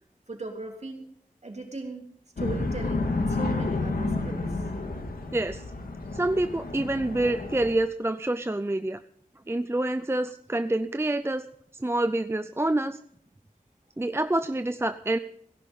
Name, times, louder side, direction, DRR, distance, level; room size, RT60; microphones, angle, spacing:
voice 1, 0.3-1.1 1.4-4.6, right 2 dB, 50° right, 2 dB, 3.2 m, -38 dB
sound 1, 2.4-7.8, left 2 dB, 90° left, 2.1 m, -30 dB
voice 2, 5.3-5.6 6.1-9.0 9.5-11.4 11.7-13.0 14.0-15.2, right 1 dB, 15° right, 11 dB, 0.6 m, -27 dB
17.5 x 11.0 x 5.4 m, 0.65 s
wide cardioid pair, 70°, 15 cm